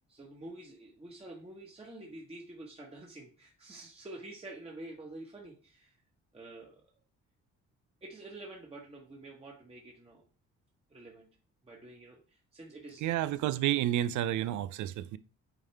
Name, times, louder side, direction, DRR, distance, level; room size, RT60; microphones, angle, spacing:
voice 1, 0.1-5.9 6.3-6.8 8.0-10.2 10.9-11.3 11.6-13.1, right 2 dB, 20° right, 1.4 m, -48 dB
voice 2, 13.0-15.2, right 13 dB, 75° right, 0.5 m, -30 dB
8.9 x 3.7 x 3.3 m
cardioid pair, 90°, 30 cm